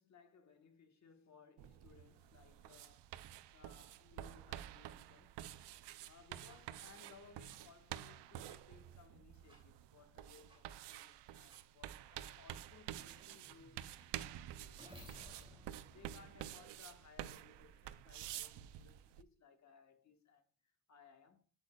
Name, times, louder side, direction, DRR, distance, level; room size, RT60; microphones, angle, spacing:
voice 1, 0.0-3.2 3.5-5.8 6.0-21.4, left 6 dB, 45° left, 1.3 m, -64 dB
sound 1, 1.6-19.2, right 12 dB, 85° right, 0.5 m, -50 dB
sound 2, 6.5-6.6 7.5-7.6 8.5-8.6 9.5-9.6 10.5-10.6 11.5-11.6 12.5-12.6 13.2-17.1, equal, 15° right, 2.6 m, -60 dB
8.3 x 8.1 x 2.3 m
cardioid pair, 130°, 41 cm